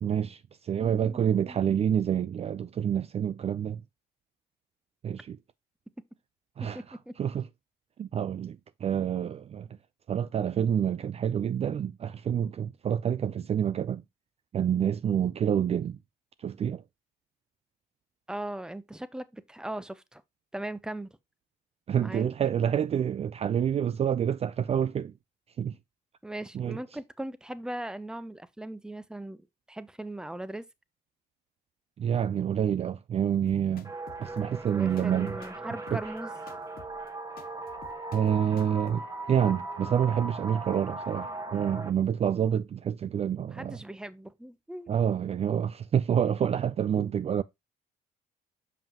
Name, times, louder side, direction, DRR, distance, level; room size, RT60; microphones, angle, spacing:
voice 1, 0.0-3.8 5.0-5.4 6.6-7.5 8.0-9.7 10.1-14.0 14.5-16.0 16.4-16.8 21.9-25.1 25.6-25.8 26.5-26.8 32.0-33.9 34.2-35.4 35.9-36.0 38.1-39.0 39.3-43.8 44.9-47.4, right 9 dB, 40° right, 0.4 m, -28 dB
voice 2, 1.4-1.8 6.6-7.3 18.3-20.2 20.5-21.1 22.0-22.3 26.2-30.7 34.2-36.3 43.5-44.9 46.9-47.1, right 1 dB, 5° right, 0.8 m, -39 dB
sound 1, 33.5-39.0, left 7 dB, 60° left, 1.4 m, -52 dB
sound 2, 33.8-41.9, right 2 dB, 20° right, 1.5 m, -39 dB
7.2 x 5.5 x 2.9 m
cardioid pair, 90°, 17 cm